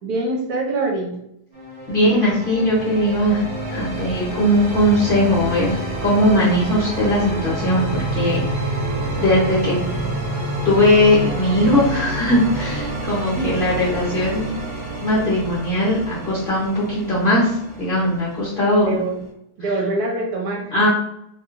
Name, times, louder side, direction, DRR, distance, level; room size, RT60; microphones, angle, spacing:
voice 1, 0.0-1.2 13.4-13.5 18.8-19.2 19.6-20.9, right 2 dB, 70° right, 1 dB, 1.2 m, -24 dB
sound 1, 1.5-19.3, right 2 dB, 40° right, 0.7 m, -28 dB
voice 2, 1.9-3.4 3.7-8.8 9.2-9.8 10.6-14.6 15.0-19.0 20.7-20.9, left 1 dB, 45° left, -7 dB, 0.7 m, -19 dB
sound 2, 7.5-12.8, left 2 dB, 85° left, 0.5 m, -34 dB
2.9 x 2.7 x 2.4 m, 0.77 s
omnidirectional pair, 1.7 m